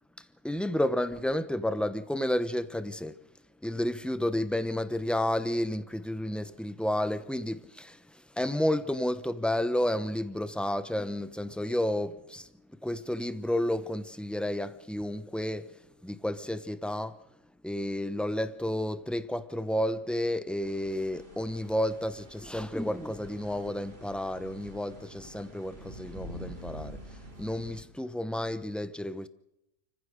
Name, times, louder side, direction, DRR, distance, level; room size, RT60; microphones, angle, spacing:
voice 1, 0.4-3.1 3.6-8.0 8.4-12.5 12.8-15.7 16.0-17.1 17.6-27.0 27.4-29.3, left 1 dB, ahead, 0.6 m, -31 dB
sound 1, 20.6-27.8, equal, 40° right, 3.5 m, -47 dB
29.5 x 15.0 x 6.5 m
omnidirectional pair, 1.6 m